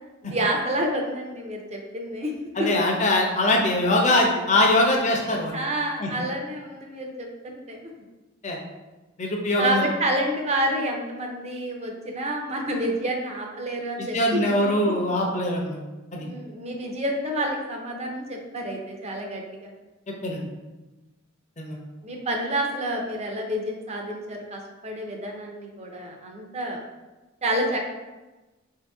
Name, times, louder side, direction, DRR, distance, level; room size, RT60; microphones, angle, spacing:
voice 1, 0.2-2.3 2.6-2.7 5.5-8.0 9.6-15.0 16.2-19.7 22.0-26.8 27.4-27.8, right 1 dB, 30° right, 1 dB, 0.7 m, -29 dB
voice 2, 2.6-5.6 6.0-6.1 8.4-8.6 9.2-9.9 14.0-15.8 16.1-16.3 20.1-20.4 21.6-21.8, left 1 dB, 35° left, 0 dB, 0.7 m, -22 dB
4.7 x 2.8 x 3.5 m, 1.1 s
head